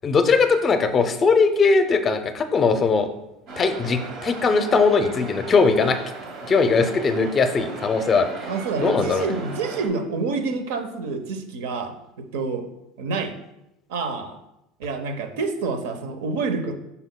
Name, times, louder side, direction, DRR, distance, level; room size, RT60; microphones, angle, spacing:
voice 1, 0.0-3.1 3.6-6.0 6.5-8.3 8.8-9.3, left 4 dB, 25° left, 9 dB, 0.5 m, -20 dB
sound 1, 3.5-9.9, right 3 dB, 55° right, 1.2 m, -37 dB
voice 2, 8.4-12.7 13.0-13.3 13.9-14.4 14.8-16.8, right 4 dB, 85° right, 7 dB, 0.8 m, -28 dB
7.9 x 5.6 x 2.2 m, 0.87 s
supercardioid pair, 140°, 0 cm